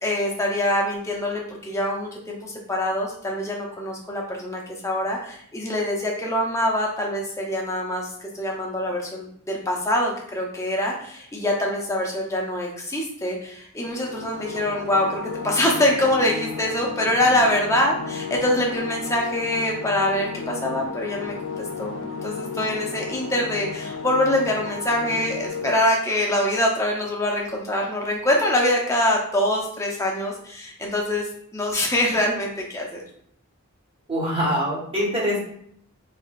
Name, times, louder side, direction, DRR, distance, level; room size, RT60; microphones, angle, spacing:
voice 1, 0.0-31.3 31.5-33.0, left 1 dB, 15° left, -1 dB, 0.7 m, -24 dB
sound 1, 13.8-25.7, left 5 dB, 65° left, 0.4 m, -33 dB
voice 2, 34.1-35.4, equal, 25° right, -5 dB, 1.2 m, -24 dB
4.6 x 3.1 x 2.4 m, 0.68 s
head